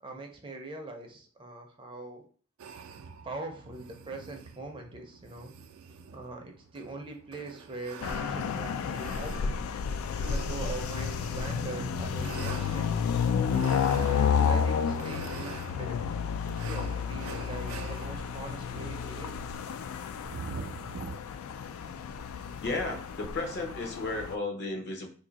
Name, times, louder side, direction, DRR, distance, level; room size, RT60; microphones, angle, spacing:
voice 1, 0.0-2.3 3.2-5.5 6.1-9.6 10.2-13.1 14.0-16.0 16.6-19.4, right 3 dB, 25° right, 3 dB, 0.5 m, -42 dB
sound 1, 2.6-21.2, right 5 dB, 80° right, 0.4 m, -44 dB
sound 2, 8.0-24.3, left 7 dB, 85° left, 0.3 m, -31 dB
voice 2, 22.6-25.1, left 2 dB, 55° left, 3 dB, 0.7 m, -34 dB
2.7 x 2.6 x 3.9 m, 0.42 s
head